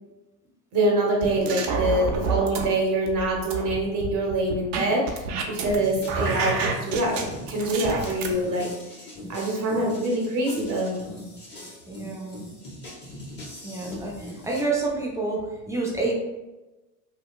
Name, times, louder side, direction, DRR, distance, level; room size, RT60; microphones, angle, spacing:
voice 1, 0.7-7.2 7.5-8.7 9.3-11.0, right 1 dB, 40° right, -1 dB, 1.0 m, -25 dB
sound 1, 1.2-2.7 3.1-5.8 6.1-8.3, right 4 dB, 60° right, 0.6 m, -28 dB
sound 2, 5.7-14.6, left 1 dB, 20° left, 1.0 m, -41 dB
voice 2, 11.9-12.4 13.6-16.1, right 3 dB, 5° right, -4 dB, 0.5 m, -29 dB
2.8 x 2.2 x 2.3 m, 1.1 s
hypercardioid pair, 75°, 49 cm